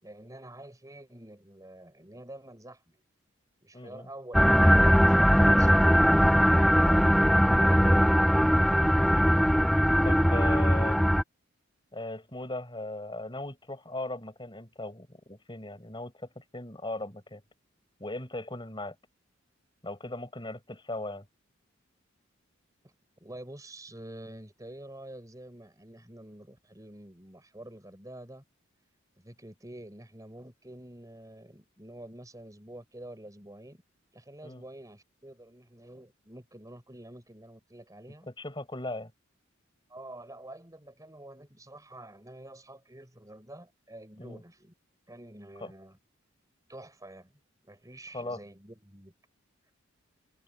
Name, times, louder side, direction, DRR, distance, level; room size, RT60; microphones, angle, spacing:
voice 1, 0.0-3.0 3.6-4.3 4.7-5.9 6.9-8.2 22.8-22.9 23.2-28.4 29.2-33.8 34.1-38.3 39.9-44.7 45.1-46.0 46.7-47.3 47.6-49.1, right 1 dB, 15° right, 5.0 m, -47 dB
voice 2, 3.7-4.1 6.4-7.0 9.0-9.3 10.0-11.0 11.9-17.4 18.0-19.0 19.8-21.3 34.4-34.6 38.3-39.1 44.2-44.4 45.6-45.7 48.1-48.4, left 2 dB, 25° left, 6.8 m, -38 dB
sound 1, 4.3-11.2, equal, ahead, 0.5 m, -21 dB
head